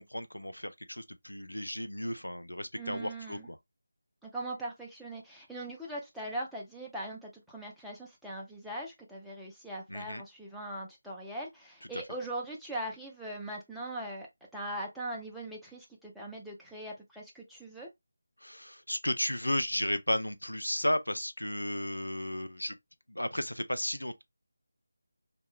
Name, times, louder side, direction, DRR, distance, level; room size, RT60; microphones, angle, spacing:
voice 1, 0.0-3.6 9.9-10.2 18.4-22.8 23.1-24.2, left 1 dB, 85° left, 0.4 m, -34 dB
voice 2, 2.7-3.5 4.2-14.3 14.5-17.9, right 1 dB, ahead, 0.4 m, -40 dB
2.3 x 2.1 x 3.5 m
figure-of-eight pair, 160°, 0 cm